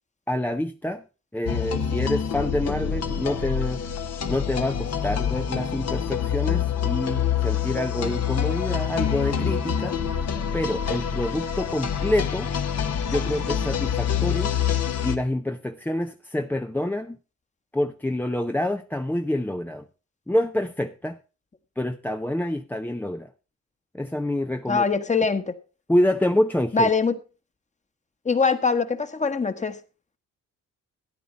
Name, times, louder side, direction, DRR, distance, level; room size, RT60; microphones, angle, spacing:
voice 1, 0.3-1.0 1.3-3.8 4.3-12.5 13.1-14.5 15.0-17.2 17.7-19.8 20.3-21.2 21.8-23.3 23.9-24.8 25.9-26.9, left 1 dB, 5° left, 0.6 m, -27 dB
sound 1, 1.5-15.2, left 8 dB, 55° left, 1.4 m, -26 dB
voice 2, 24.7-25.5 26.7-27.1 28.2-29.8, left 4 dB, 25° left, 1.4 m, -23 dB
13.5 x 10.0 x 4.1 m
cardioid pair, 90°, 30 cm